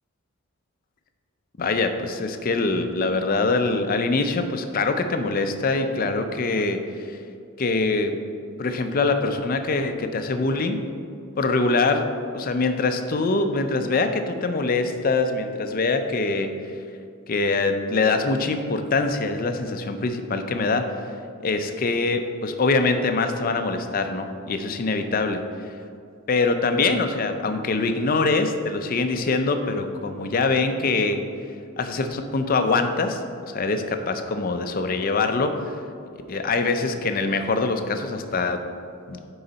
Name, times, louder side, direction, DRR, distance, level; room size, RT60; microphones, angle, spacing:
voice 1, 1.6-7.2 7.6-8.2 8.6-10.8 11.4-12.1 12.3-16.8 17.3-21.1 21.4-25.8 26.3-31.2 31.8-35.8 36.3-38.6 39.1-39.2, left 3 dB, 40° left, 7 dB, 0.4 m, -24 dB
9.6 x 3.9 x 4.0 m, 2.4 s
head